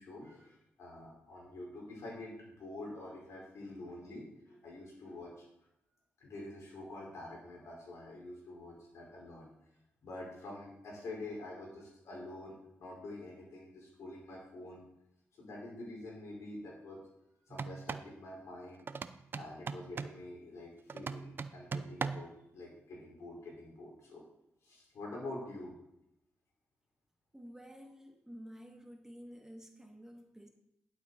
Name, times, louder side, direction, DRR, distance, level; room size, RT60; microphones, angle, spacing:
voice 1, 0.0-5.5 6.2-9.5 10.0-14.8 15.3-17.0 17.5-18.9 19.3-24.2 24.6-25.7, left 2 dB, 70° left, -3 dB, 4.7 m, -47 dB
sound 1, 17.5-18.1 18.9-20.2 20.9-22.4, right 5 dB, 45° right, 0.5 m, -40 dB
voice 2, 27.3-30.5, equal, 10° right, 3 dB, 1.4 m, -51 dB
11.5 x 7.7 x 4.1 m, 0.81 s
cardioid pair, 80°, 5 cm